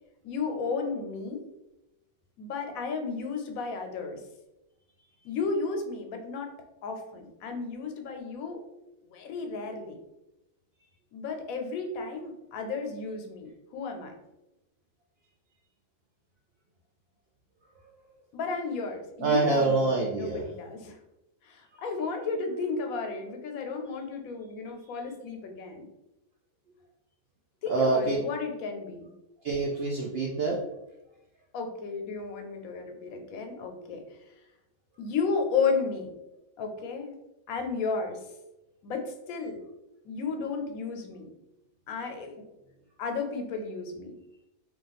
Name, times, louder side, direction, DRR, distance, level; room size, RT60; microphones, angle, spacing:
voice 1, 0.2-1.4 2.4-4.2 5.2-6.5 6.8-8.6 9.1-10.0 11.1-14.1 18.3-21.0 21.5-25.9 27.6-29.1 31.5-34.0 35.0-36.1 36.6-37.1 37.5-38.2 38.8-39.6 40.0-41.3 41.9-42.4 43.0-44.1, left 4 dB, 85° left, 4 dB, 1.0 m, -33 dB
voice 2, 19.2-20.5 27.7-28.2 29.4-30.6, right 3 dB, 65° right, -3 dB, 0.6 m, -26 dB
2.5 x 2.3 x 3.9 m, 0.93 s
omnidirectional pair, 1.5 m